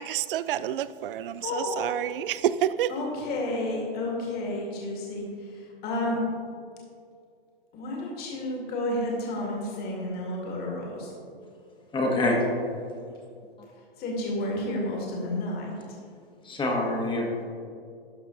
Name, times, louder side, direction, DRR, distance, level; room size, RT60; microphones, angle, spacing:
voice 1, 0.0-2.9, right 11 dB, 60° right, 16 dB, 0.5 m, -28 dB
voice 2, 1.4-1.9 2.9-5.3 5.8-6.2 7.7-11.1 14.0-15.8, left 1 dB, 30° left, -2 dB, 2.2 m, -31 dB
voice 3, 11.9-12.4 16.4-17.4, left 2 dB, 15° left, 0 dB, 1.5 m, -26 dB
12.0 x 5.8 x 3.9 m, 2.3 s
hypercardioid pair, 125°, 30 cm